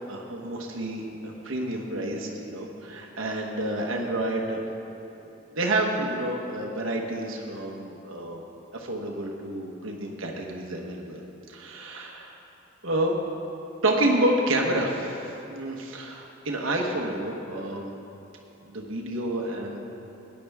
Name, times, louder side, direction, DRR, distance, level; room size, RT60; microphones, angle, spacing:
voice 1, 0.1-4.6 5.6-8.4 8.7-11.2 11.5-12.3 12.8-13.2 13.8-17.9 18.7-19.9, right 1 dB, 80° right, 0 dB, 1.2 m, -29 dB
17.0 x 10.0 x 3.6 m, 2.9 s
head